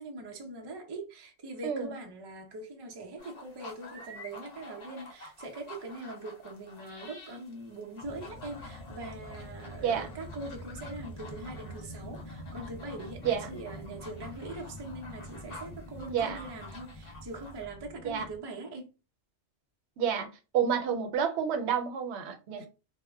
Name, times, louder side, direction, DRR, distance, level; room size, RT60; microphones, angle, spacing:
voice 1, 0.0-18.9 22.6-22.7, right 2 dB, 35° right, 0.4 m, -42 dB
voice 2, 1.6-1.9 9.8-10.1 13.2-13.5 16.1-16.4 18.0-18.3 20.0-20.3 20.5-22.7, right 7 dB, 90° right, 0.9 m, -29 dB
sound 1, 3.2-17.7, left 2 dB, 70° left, 1.0 m, -50 dB
sound 2, 8.0-18.4, left 1 dB, 50° left, 0.4 m, -45 dB
2.1 x 2.0 x 3.3 m
omnidirectional pair, 1.1 m